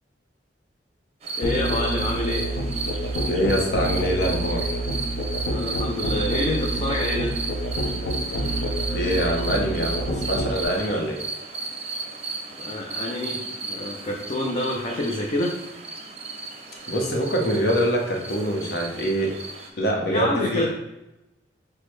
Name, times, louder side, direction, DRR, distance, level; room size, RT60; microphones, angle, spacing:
sound 1, 1.2-19.7, right 3 dB, 35° right, 0.6 m, -34 dB
Musical instrument, 1.4-10.6, right 1 dB, 85° left, 0.5 m, -28 dB
voice 1, 1.4-2.5 5.5-7.3 12.5-13.4 13.7-15.5 20.1-20.7, left 1 dB, 35° left, -1 dB, 0.5 m, -27 dB
voice 2, 3.3-4.7 8.9-11.2 16.9-19.3 19.8-20.7, equal, 60° left, 0 dB, 0.9 m, -24 dB
6.1 x 2.1 x 3.2 m, 0.94 s
head